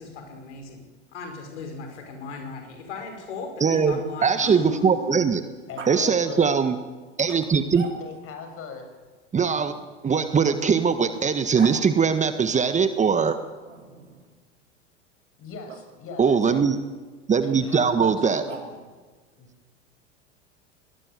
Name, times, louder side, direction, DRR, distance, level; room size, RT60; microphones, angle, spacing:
voice 1, 0.0-5.5, left 4 dB, 70° left, 6 dB, 5.1 m, -37 dB
Growling, 1.7-5.1 5.8-6.0 7.2-8.3 9.7-11.8 13.7-14.3 15.7-15.8 18.2-19.0, right 3 dB, 85° right, 3.7 m, -44 dB
voice 2, 3.6-5.4 5.9-6.7 7.2-7.8 9.3-9.7 10.0-13.4 16.2-16.8 17.3-18.4, right 6 dB, 20° right, 10 dB, 1.5 m, -21 dB
voice 3, 5.7-6.5 8.0-8.9 15.4-16.6 17.4-18.8 19.4-19.5, left 5 dB, 40° left, 6 dB, 7.2 m, -39 dB
21.5 x 19.5 x 9.6 m, 1.4 s
figure-of-eight pair, 85°, 36 cm